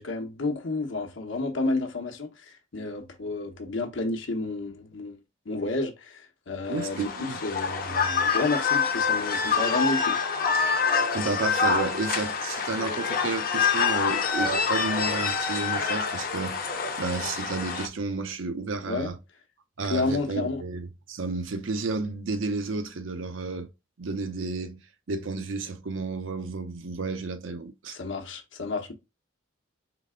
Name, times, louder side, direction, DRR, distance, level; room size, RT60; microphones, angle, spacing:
voice 1, 0.0-5.2 5.5-10.2 18.9-19.1 19.8-20.6 27.9-28.9, left 3 dB, 70° left, 0.9 m, -30 dB
sound 1, 6.7-17.9, left 5 dB, 45° left, 0.7 m, -26 dB
voice 2, 6.7-7.4 11.1-19.2 19.8-23.7 24.0-24.8 25.1-28.0, right 3 dB, 75° right, 0.7 m, -32 dB
3.9 x 3.3 x 3.7 m
head